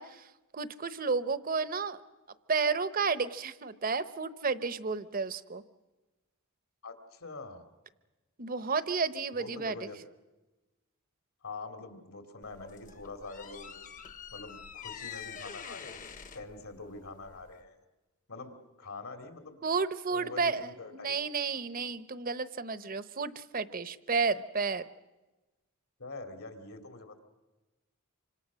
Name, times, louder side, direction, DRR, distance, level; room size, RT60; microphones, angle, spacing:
voice 1, 0.0-2.0 2.5-5.6 8.4-9.9 19.6-24.8, right 4 dB, 40° right, 14 dB, 0.9 m, -32 dB
voice 2, 6.8-7.6 9.3-10.0 11.4-13.8 14.3-17.7 18.3-19.6 20.1-21.2 26.0-27.2, left 3 dB, 70° left, 6 dB, 3.0 m, -45 dB
sound 1, 12.4-17.6, left 7 dB, 35° left, 1.0 m, -46 dB
26.5 x 25.5 x 6.4 m, 1.1 s
head